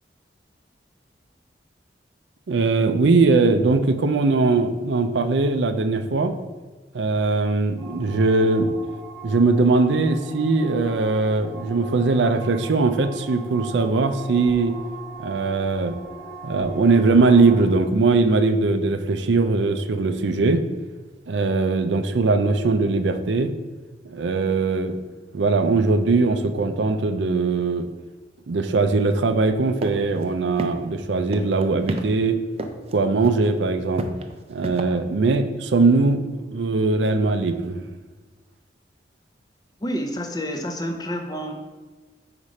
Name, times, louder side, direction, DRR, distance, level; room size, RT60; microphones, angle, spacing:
voice 1, 2.5-6.3 6.9-8.7 9.2-14.7 15.2-16.0 16.4-20.6 21.3-23.5 24.0-25.0 25.3-27.9 28.5-32.4 32.9-34.1 34.5-37.9, right 3 dB, 90° right, 8 dB, 0.5 m, -20 dB
sound 1, 7.8-17.6, right 2 dB, ahead, 1.1 m, -40 dB
sound 2, 29.8-29.9 30.2-30.3 30.6-31.0 31.3-32.0 32.6-32.9 33.2-33.5 34.0-34.8, right 1 dB, 35° right, 0.5 m, -28 dB
voice 2, 39.8-41.5, equal, 20° left, 5 dB, 0.6 m, -28 dB
5.1 x 4.9 x 4.2 m, 1.3 s
head